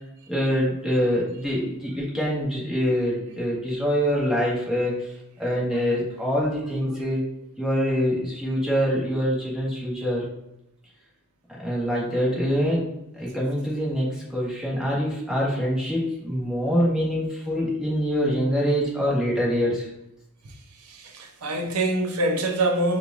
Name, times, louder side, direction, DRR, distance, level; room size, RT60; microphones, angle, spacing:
voice 1, 0.3-5.0 5.4-7.2 7.6-10.3 11.6-12.8 13.2-19.9, equal, 5° right, 1.2 m, -25 dB
voice 2, 20.8-23.0, right 1 dB, 85° right, 0.7 m, -25 dB
4.6 x 2.5 x 3.5 m
head